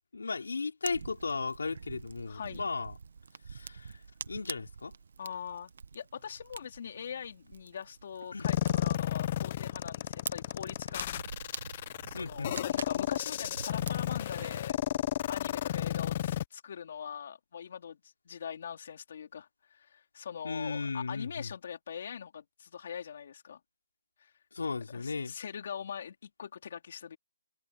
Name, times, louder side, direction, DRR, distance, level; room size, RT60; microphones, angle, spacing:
voice 1, 0.1-2.9 3.5-3.9 4.3-4.9 8.3-8.5 12.1-12.5 20.4-21.5 24.5-25.3, left 4 dB, 85° left, 4.6 m, -35 dB
Fire, 0.8-14.6, right 5 dB, 65° right, 1.5 m, -46 dB
voice 2, 2.3-2.7 5.2-11.1 12.1-14.8 15.3-23.6 24.2-24.3 24.9-27.2, left 7 dB, 50° left, 3.8 m, -42 dB
sound 1, 8.4-16.4, left 12 dB, 35° left, 0.9 m, -32 dB
hypercardioid pair, 160°, 0 cm